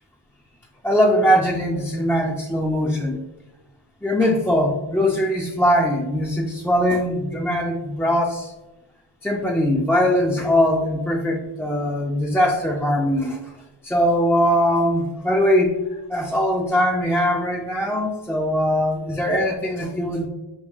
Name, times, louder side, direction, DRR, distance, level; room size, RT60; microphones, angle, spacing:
voice 1, 0.8-3.2 4.0-8.5 9.2-13.5 13.8-15.7 16.1-20.3, equal, 5° left, -2 dB, 0.4 m, -21 dB
5.4 x 2.5 x 2.3 m, 1.0 s
wide cardioid pair, 45°, 48 cm